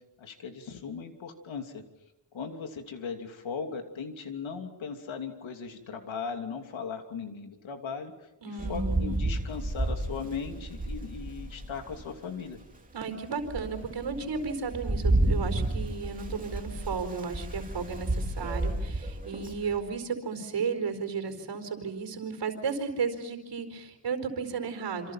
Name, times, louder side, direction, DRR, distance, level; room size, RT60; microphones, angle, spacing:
voice 1, 0.2-1.8 2.3-8.1 8.7-12.6, left 5 dB, 85° left, 5 dB, 3.1 m, -38 dB
voice 2, 8.4-9.2 12.9-25.1, right 5 dB, 65° right, 7 dB, 4.6 m, -34 dB
Rain, 8.6-12.1 12.6-12.7 13.2-19.8, right 1 dB, 15° right, 3.0 m, -31 dB
27.5 x 27.0 x 5.8 m, 0.93 s
wide cardioid pair, 125°, 45 cm